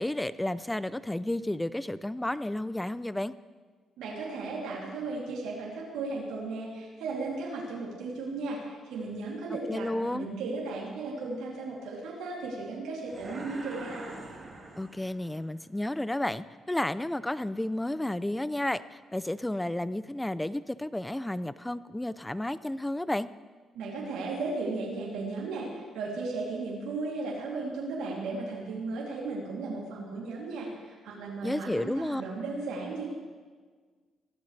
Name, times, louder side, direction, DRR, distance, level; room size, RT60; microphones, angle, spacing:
voice 1, 0.0-3.3 9.7-10.3 14.8-23.3 31.4-32.2, left 1 dB, 10° left, 15 dB, 0.5 m, -32 dB
voice 2, 4.0-14.1 23.7-33.1, right 3 dB, 90° right, -5 dB, 3.1 m, -35 dB
sound 1, 13.1-15.4, right 2 dB, 35° right, 3.3 m, -43 dB
22.0 x 16.0 x 3.4 m, 1.5 s
cardioid pair, 90°, 0 cm